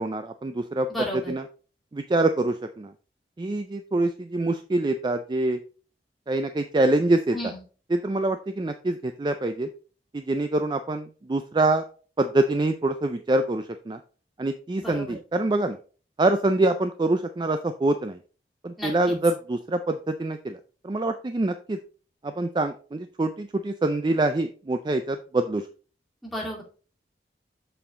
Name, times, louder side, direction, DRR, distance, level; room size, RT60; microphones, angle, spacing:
voice 1, 0.0-0.9 1.3-1.4 1.9-2.9 3.4-5.6 6.3-7.5 7.9-9.7 10.1-11.8 12.2-14.0 14.4-15.8 16.2-18.2 18.6-20.6 20.8-21.8 22.2-25.6, right 2 dB, 25° right, 8 dB, 0.3 m, -25 dB
voice 2, 0.9-1.3 7.3-7.6 14.8-15.2 18.8-19.2 26.2-26.6, equal, ahead, -4 dB, 2.2 m, -33 dB
6.9 x 5.5 x 3.7 m, 0.39 s
head